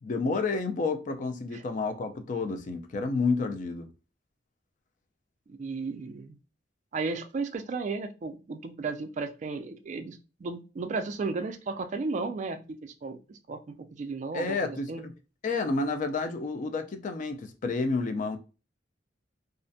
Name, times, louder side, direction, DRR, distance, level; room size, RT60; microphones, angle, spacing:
voice 1, 0.0-3.9 14.3-15.1 15.4-18.4, left 3 dB, 45° left, 0.3 m, -30 dB
voice 2, 5.5-6.4 6.9-15.0, right 4 dB, 40° right, 0.3 m, -34 dB
2.4 x 2.1 x 2.5 m
head